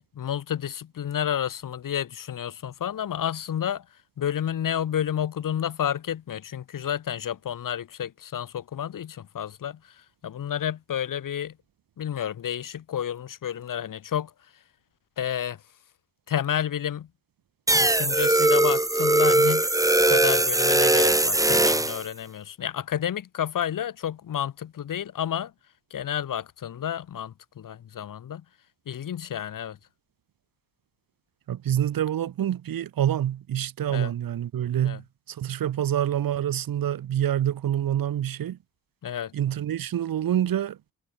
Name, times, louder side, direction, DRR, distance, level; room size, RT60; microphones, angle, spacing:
voice 1, 0.0-3.8 4.2-11.6 12.0-14.3 15.2-15.6 16.3-17.1 17.7-19.7 20.1-25.5 25.9-28.4 28.9-29.8 33.9-34.1 34.8-35.0 39.0-39.3, left 9 dB, 65° left, 1.5 m, -30 dB
sound 1, 17.7-22.0, right 1 dB, 10° right, 1.2 m, -20 dB
voice 2, 31.5-38.6 39.3-40.8, right 11 dB, 70° right, 1.8 m, -27 dB
supercardioid pair, 55°, 35 cm